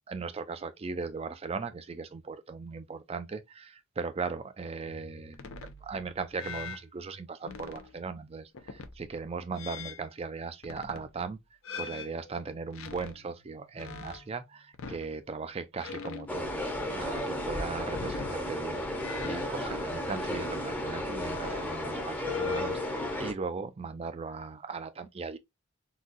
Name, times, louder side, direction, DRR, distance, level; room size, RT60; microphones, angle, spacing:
voice 1, 0.1-5.5 5.8-11.4 11.8-16.5 16.9-25.4, right 4 dB, 30° right, 0.4 m, -38 dB
sound 1, 4.9-6.8 7.4-7.9 8.5-9.1 9.5-10.1 10.6-11.1 11.6-14.4 14.7-15.2 15.8-16.6 16.9-17.3 17.9-18.4 19.0-20.9 21.2-21.7 22.2-22.9, left 6 dB, 70° left, 0.5 m, -42 dB
sound 2, 16.3-23.3, left 1 dB, 10° left, 0.7 m, -34 dB
3.9 x 2.2 x 2.5 m
head